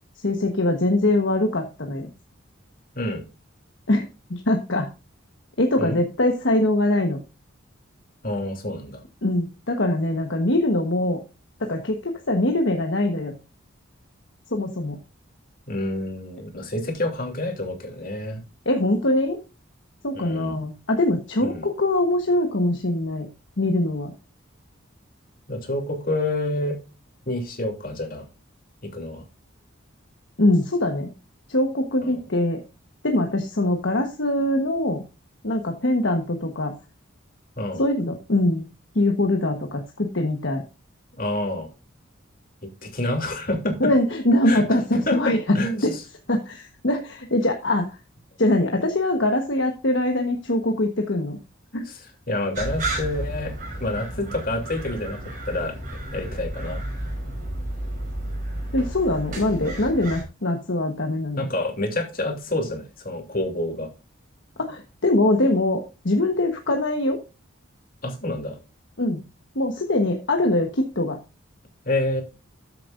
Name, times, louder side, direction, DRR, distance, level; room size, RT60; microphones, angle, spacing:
voice 1, 0.2-2.1 3.9-4.0 4.3-4.9 5.6-7.2 9.2-11.2 11.6-13.3 14.5-15.0 18.6-19.4 20.0-23.3 23.6-24.1 30.4-31.1 31.5-32.6 33.0-35.0 35.4-36.7 37.8-38.6 38.9-40.6 43.8-45.4 45.8-45.9 46.3-47.9 48.4-51.4 51.7-51.8 58.7-61.5 64.6-65.8 66.0-67.2 69.0-69.2 69.5-71.2, left 1 dB, 60° left, 3 dB, 1.2 m, -22 dB
voice 2, 8.2-9.0 15.7-18.4 20.1-20.6 21.4-21.7 25.5-26.8 27.3-28.3 28.8-29.2 32.0-32.2 37.6-37.8 41.2-41.7 42.8-43.9 44.4-44.6 45.1-46.0 51.8-53.5 53.8-55.2 55.4-55.7 56.1-56.8 61.4-63.9 68.0-68.6 71.8-72.2, left 1 dB, 40° left, 2 dB, 3.0 m, -28 dB
sound 1, 52.5-60.2, right 1 dB, 40° right, 5.2 m, -32 dB
13.5 x 7.5 x 2.6 m, 0.30 s
head